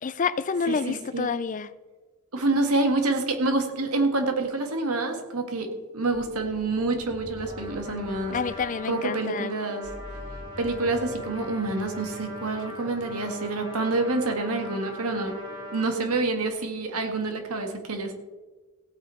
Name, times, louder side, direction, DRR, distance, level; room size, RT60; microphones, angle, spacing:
voice 1, 0.0-1.7 8.3-9.6, left 5 dB, 35° left, 15 dB, 0.4 m, -28 dB
voice 2, 0.7-1.3 2.3-8.4 8.9-9.9 10.6-15.3 15.7-18.1, right 2 dB, 80° right, 5 dB, 1.8 m, -27 dB
sound 1, 6.1-16.6, left 1 dB, 15° left, 1.7 m, -46 dB
Trumpet, 7.4-15.9, left 1 dB, 20° right, 4.8 m, -41 dB
16.0 x 8.8 x 4.4 m, 1.3 s
head